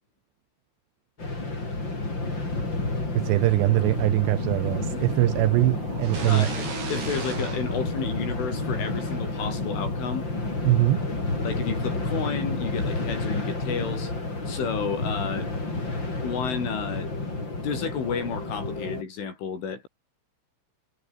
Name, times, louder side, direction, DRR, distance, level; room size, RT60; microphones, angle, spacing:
sound 1, 1.2-19.0, left 2 dB, 25° left, 7.1 m, -30 dB
voice 1, 3.1-6.5 10.6-11.1, right 19 dB, 80° right, 2.5 m, -22 dB
sound 2, 4.6-7.7, right 4 dB, 35° right, 5.0 m, -45 dB
sound 3, 6.0-8.8, right 4 dB, 60° right, 10.0 m, -36 dB
voice 2, 6.2-10.3 11.4-14.1 14.5-15.5 16.2-17.3 17.6-19.9, left 6 dB, 80° left, 8.0 m, -32 dB
omnidirectional pair, 5.5 m